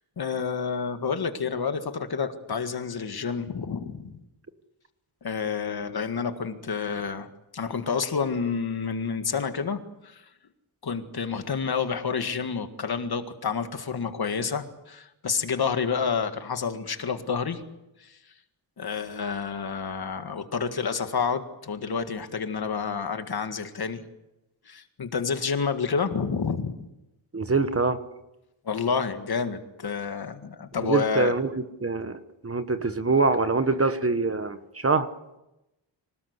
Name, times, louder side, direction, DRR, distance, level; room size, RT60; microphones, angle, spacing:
voice 1, 0.2-4.2 5.2-7.3 7.5-10.2 10.8-17.6 18.0-18.1 18.8-24.0 24.7-26.8 28.7-31.3, left 6 dB, 50° left, 8 dB, 1.9 m, -29 dB
voice 2, 27.3-28.0 30.8-35.1, right 4 dB, 30° right, 10 dB, 1.2 m, -25 dB
25.5 x 19.0 x 8.2 m, 0.94 s
wide cardioid pair, 150°, 47 cm